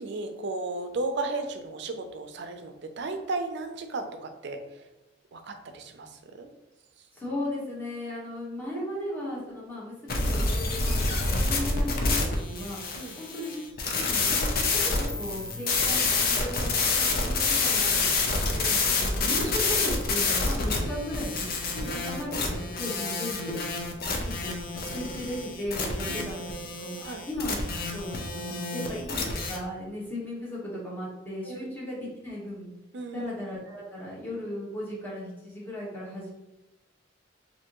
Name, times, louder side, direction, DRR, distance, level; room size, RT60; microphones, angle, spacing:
voice 1, 0.0-4.6 5.3-6.5 12.9-13.2 19.4-19.5 21.7-21.9 26.0-26.3 27.0-27.3 31.4-31.7 32.9-33.2, right 3 dB, 65° right, 6 dB, 0.4 m, -35 dB
voice 2, 7.1-12.8 13.2-13.6 13.9-14.4 14.7-18.1 18.5-21.5 21.9-23.6 24.2-24.5 24.8-26.5 26.8-26.9 27.3-27.6 27.9-32.7 33.1-36.3, left 1 dB, 10° left, -7 dB, 1.2 m, -36 dB
sound 1, 10.1-29.6, left 3 dB, 55° left, 0.5 m, -28 dB
3.3 x 2.7 x 2.9 m, 1.0 s
head